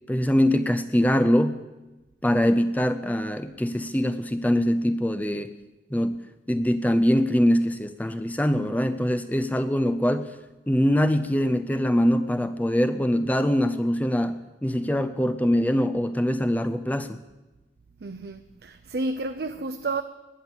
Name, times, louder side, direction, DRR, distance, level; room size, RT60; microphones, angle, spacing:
voice 1, 0.1-1.6 2.2-5.6 5.9-10.3 10.7-17.2, equal, 10° left, 0.5 m, -23 dB
voice 2, 18.0-20.0, right 2 dB, 55° right, 0.6 m, -31 dB
19.0 x 10.5 x 7.1 m
head